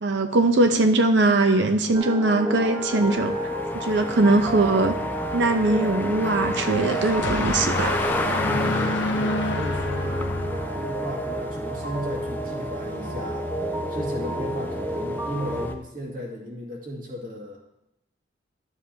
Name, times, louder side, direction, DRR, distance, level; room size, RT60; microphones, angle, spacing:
voice 1, 0.0-3.3 3.7-5.0 5.3-8.0 9.1-9.2, right 2 dB, 65° right, 7 dB, 0.6 m, -21 dB
sound 1, 1.9-15.7, right 1 dB, 15° right, 1.0 m, -31 dB
sound 2, 2.6-15.8, left 1 dB, 10° left, 0.4 m, -33 dB
sound 3, 6.6-11.1, left 2 dB, 65° left, 0.6 m, -29 dB
voice 2, 8.5-13.5 13.9-17.6, equal, 45° right, -3 dB, 2.1 m, -35 dB
12.5 x 7.3 x 2.8 m, 0.87 s
head